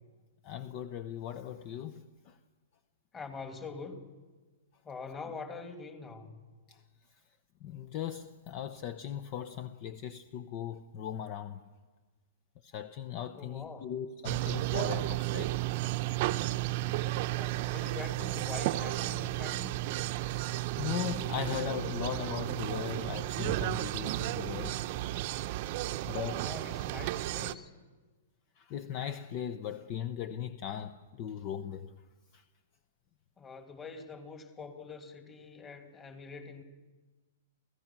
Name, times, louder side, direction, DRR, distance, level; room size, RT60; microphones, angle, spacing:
voice 1, 0.4-2.4 6.7-6.8 7.6-11.6 12.6-15.6 20.2-20.3 20.8-24.8 26.1-26.5 28.6-31.9 32.3-32.4, left 9 dB, 40° left, 0.9 m, -38 dB
voice 2, 3.1-4.1 4.8-6.4 13.3-13.9 17.4-19.7 26.4-27.7 33.4-36.6, left 4 dB, 20° left, 2.7 m, -44 dB
sound 1, 14.2-27.5, right 16 dB, 50° right, 0.8 m, -33 dB
29.5 x 16.0 x 6.2 m
hypercardioid pair, 130°, 0 cm